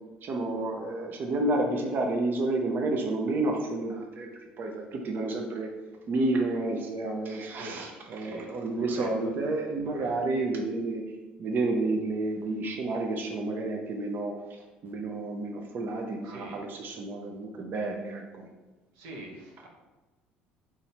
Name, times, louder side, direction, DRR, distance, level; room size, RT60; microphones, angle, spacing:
voice 1, 0.2-4.3 4.6-5.7 6.1-11.0 11.4-18.5, right 2 dB, 50° right, 2 dB, 0.7 m, -30 dB
voice 2, 7.5-7.9 8.2-8.5 8.8-9.1 9.8-10.1 16.2-16.6 18.9-19.7, right 1 dB, 80° right, -1 dB, 1.1 m, -43 dB
3.9 x 3.1 x 4.3 m, 1.2 s
hypercardioid pair, 70°, 4 cm